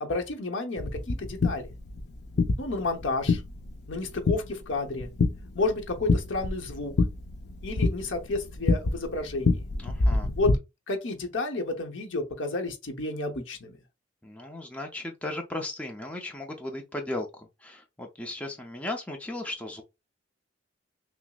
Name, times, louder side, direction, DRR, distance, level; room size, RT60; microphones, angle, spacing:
voice 1, 0.0-1.7 2.6-3.4 3.9-5.1 5.5-6.9 7.6-9.6 10.4-10.6 10.9-13.8, left 2 dB, 80° left, 0.9 m, -31 dB
sound 1, 0.8-10.6, left 3 dB, 60° left, 0.5 m, -28 dB
voice 2, 9.8-10.3 14.2-19.8, left 1 dB, 5° left, 0.5 m, -36 dB
6.0 x 2.0 x 2.3 m
head